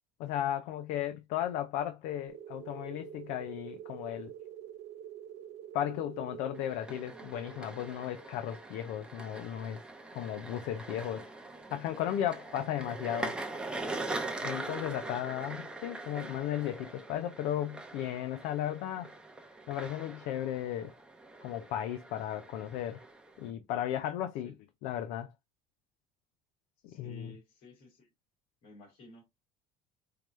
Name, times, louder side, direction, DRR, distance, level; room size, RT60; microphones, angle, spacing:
voice 1, 0.2-4.3 5.7-9.8 10.1-11.2 11.7-13.4 14.4-19.1 19.7-20.9 21.4-23.0 23.4-24.5 24.8-25.3 26.8-27.4, left 11 dB, 75° left, 0.6 m, -35 dB
sound 1, 2.3-10.6, right 10 dB, 60° right, 0.8 m, -48 dB
sound 2, 6.6-23.5, right 2 dB, 5° right, 0.7 m, -42 dB
voice 2, 26.9-28.1 28.6-29.3, left 2 dB, 60° left, 2.5 m, -54 dB
4.8 x 2.2 x 3.1 m
cardioid pair, 135°, 12 cm